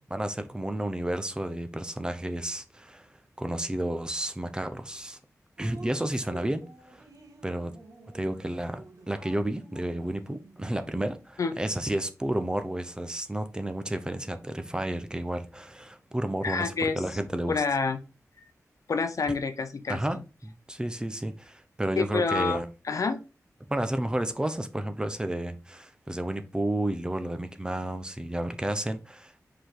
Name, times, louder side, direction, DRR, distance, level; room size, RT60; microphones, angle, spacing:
voice 1, 0.1-3.1 3.4-5.2 5.6-6.6 6.9-7.0 7.4-7.7 8.1-17.6 19.9-22.7 23.7-29.5, right 1 dB, 15° right, 0.8 m, -31 dB
Drip, 5.6-10.8, right 2 dB, 75° right, 1.6 m, -49 dB
voice 2, 16.4-17.0 17.5-18.0 18.9-20.0 22.0-22.6 22.9-23.2, left 4 dB, 65° left, 0.8 m, -27 dB
5.1 x 4.9 x 3.8 m
wide cardioid pair, 100°, 6 cm